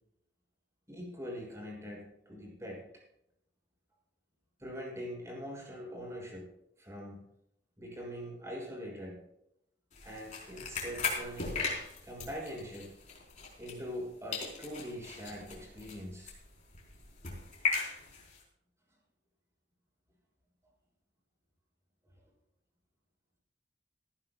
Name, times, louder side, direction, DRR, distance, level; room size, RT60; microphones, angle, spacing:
voice 1, 0.9-2.8 4.6-6.5 6.8-7.2 7.8-9.2 10.0-11.7 12.0-12.9 13.6-16.4, equal, 15° right, -2 dB, 6.4 m, -43 dB
sound 1, 9.9-14.1 14.3-18.4, left 4 dB, 45° left, 4.5 m, -38 dB
19.5 x 15.0 x 2.4 m, 0.77 s
head